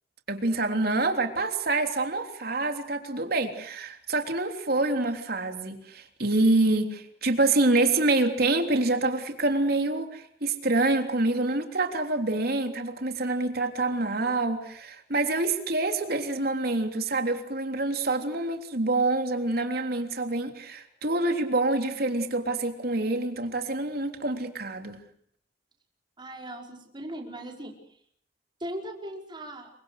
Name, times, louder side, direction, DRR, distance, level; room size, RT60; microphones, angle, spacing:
voice 1, 0.3-25.0, right 2 dB, 55° right, 5 dB, 3.4 m, -26 dB
voice 2, 26.2-27.8 28.6-29.7, right 1 dB, 25° right, 1 dB, 5.1 m, -38 dB
28.0 x 24.5 x 6.7 m, 0.64 s
head